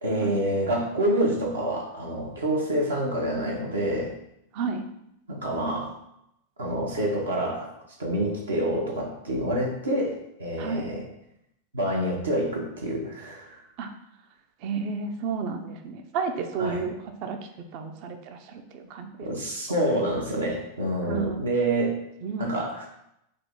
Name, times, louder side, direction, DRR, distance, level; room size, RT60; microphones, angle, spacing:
voice 1, 0.0-4.1 5.3-5.9 6.6-7.7 8.0-11.1 11.7-13.6 16.6-16.8 19.2-22.0 22.4-22.9, right 1 dB, 70° right, -1 dB, 0.8 m, -27 dB
voice 2, 4.5-4.9 10.6-10.9 13.8-13.9 14.6-16.9 17.2-17.4 17.7-19.1 21.0-21.5 22.2-22.5, right 5 dB, 45° right, 6 dB, 0.5 m, -31 dB
3.8 x 2.7 x 3.5 m, 0.80 s
figure-of-eight pair, 90°, 0 cm